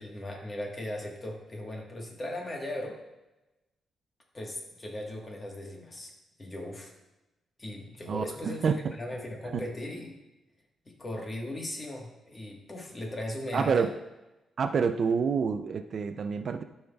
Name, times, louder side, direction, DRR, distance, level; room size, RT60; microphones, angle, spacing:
voice 1, 0.0-3.0 4.3-6.1 6.4-6.9 7.6-10.1 10.8-13.9, left 1 dB, 25° left, 0 dB, 1.3 m, -38 dB
voice 2, 8.1-8.9 9.5-9.6 13.5-13.9 14.6-16.6, right 6 dB, 50° right, 9 dB, 0.4 m, -28 dB
12.0 x 5.5 x 2.3 m, 1.0 s
cardioid pair, 130°, 0 cm